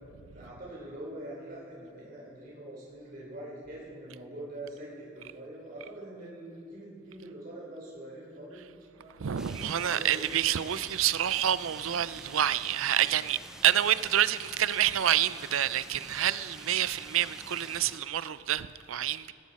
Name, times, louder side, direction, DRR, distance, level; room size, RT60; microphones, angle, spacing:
voice 1, 0.3-8.6 8.9-10.2, right 1 dB, 45° right, 4.1 m, -44 dB
voice 2, 9.2-19.3, right 11 dB, 75° right, 0.5 m, -28 dB
sound 1, 9.4-18.0, right 1 dB, 5° right, 0.6 m, -48 dB
19.0 x 16.0 x 4.2 m
head